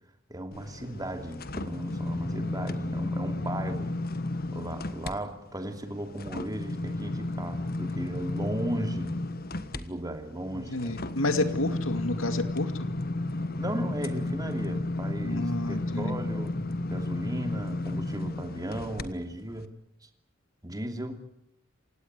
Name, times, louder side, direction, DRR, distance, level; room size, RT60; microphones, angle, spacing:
voice 1, 0.3-3.9 4.5-9.1 9.7-10.9 11.4-11.9 13.6-16.6 16.9-19.7 20.0-20.1 20.6-21.2, right 1 dB, 20° right, 6 dB, 2.8 m, -36 dB
sound 1, 0.5-5.1 5.5-19.0 19.5-19.7, left 2 dB, 50° left, 1.4 m, -33 dB
voice 2, 10.7-12.9 15.2-16.2, left 2 dB, 85° left, 9 dB, 2.5 m, -30 dB
28.0 x 17.0 x 9.5 m, 0.73 s
head